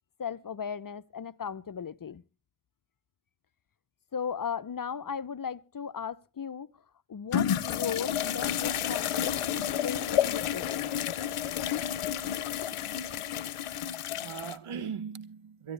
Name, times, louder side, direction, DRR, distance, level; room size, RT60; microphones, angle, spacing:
voice 1, 0.2-2.2 4.1-6.7 7.1-10.9, left 7 dB, 40° left, 0.7 m, -36 dB
sound 1, 7.3-14.6, left 10 dB, 85° left, 0.7 m, -30 dB
voice 2, 12.7-13.3 14.2-15.7, right 7 dB, 80° right, 1.0 m, -40 dB
22.5 x 13.0 x 3.3 m
cardioid pair, 45°, 50 cm